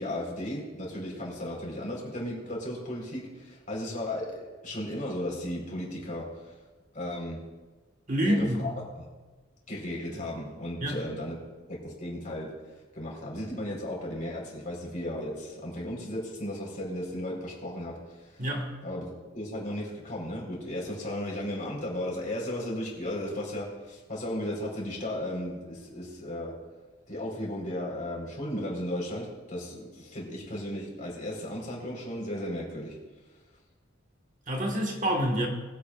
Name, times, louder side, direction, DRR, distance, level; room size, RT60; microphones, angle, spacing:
voice 1, 0.0-6.2 6.9-7.4 8.2-9.1 9.7-11.4 11.7-12.5 12.9-18.5 18.8-26.5 27.1-33.0, left 1 dB, 45° left, -3 dB, 4.1 m, -35 dB
voice 2, 8.1-8.7 10.8-11.0 18.4-18.7 34.5-35.5, equal, 40° right, 1 dB, 1.6 m, -27 dB
21.0 x 8.7 x 2.4 m, 1.2 s
head